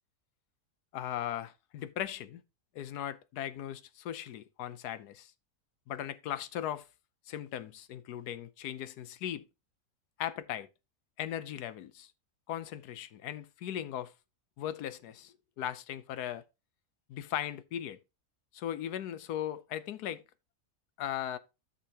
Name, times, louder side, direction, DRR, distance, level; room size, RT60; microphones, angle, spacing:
voice 1, 0.9-2.4 2.7-5.3 5.9-6.8 7.3-9.5 10.2-10.7 11.2-12.1 12.5-14.1 14.6-16.4 17.1-18.0 18.5-20.2 21.0-21.4, left 11 dB, 85° left, 1.3 m, -38 dB
13.5 x 5.6 x 2.9 m
omnidirectional pair, 1.6 m